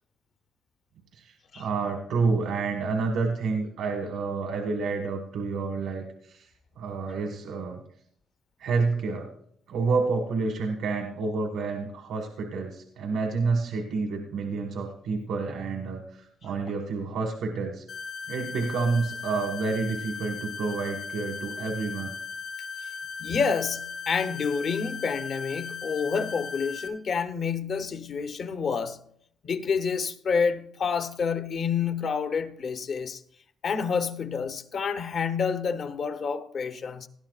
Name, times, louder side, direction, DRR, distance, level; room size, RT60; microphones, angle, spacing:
voice 1, 1.1-6.5 6.8-7.8 8.6-9.3 9.7-17.8 18.3-22.1, right 4 dB, 80° right, 1.4 m, -29 dB
sound 1, 17.9-26.9, left 5 dB, 75° left, 1.9 m, -37 dB
voice 2, 23.2-29.0 29.4-33.2 33.6-37.1, left 5 dB, 55° left, 0.9 m, -28 dB
18.0 x 11.5 x 2.4 m
cardioid pair, 90°, 0 cm